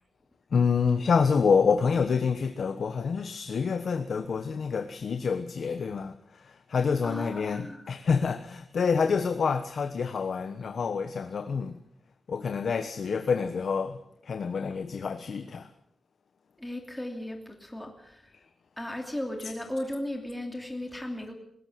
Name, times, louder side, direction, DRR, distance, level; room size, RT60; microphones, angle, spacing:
voice 1, 0.5-11.8 12.3-14.0 14.2-15.7, left 5 dB, 65° left, 9 dB, 1.2 m, -27 dB
voice 2, 7.0-7.9 16.6-18.3 18.8-21.3, left 1 dB, 5° left, 3 dB, 2.8 m, -36 dB
20.5 x 18.0 x 7.8 m, 0.74 s
wide cardioid pair, 140°, 0 cm